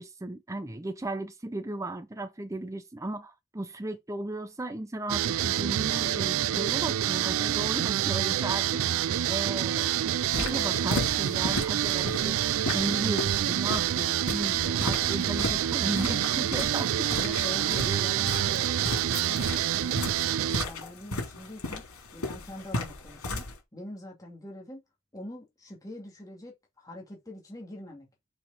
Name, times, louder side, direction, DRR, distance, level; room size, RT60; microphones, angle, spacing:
voice 1, 0.0-17.1 17.9-18.1, right 2 dB, 15° right, 0.5 m, -36 dB
sound 1, 5.1-20.7, right 11 dB, 70° right, 0.3 m, -27 dB
sound 2, 10.1-23.5, left 2 dB, 90° left, 3.5 m, -36 dB
voice 2, 17.1-24.8 25.1-28.1, left 1 dB, 15° left, 2.3 m, -44 dB
6.0 x 5.0 x 4.1 m
head